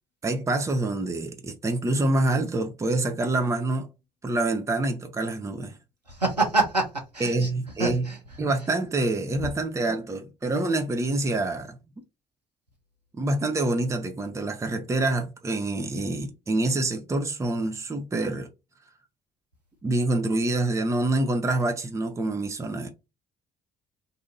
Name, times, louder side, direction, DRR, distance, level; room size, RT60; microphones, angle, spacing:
voice 1, 0.2-3.9 4.2-5.8 7.2-8.0 8.4-11.8 13.1-18.5 19.8-22.9, right 2 dB, 15° right, 0.6 m, -26 dB
voice 2, 6.1-7.5 7.8-8.2, right 3 dB, 90° right, 0.7 m, -26 dB
2.7 x 2.5 x 3.9 m
figure-of-eight pair, 50°, 20 cm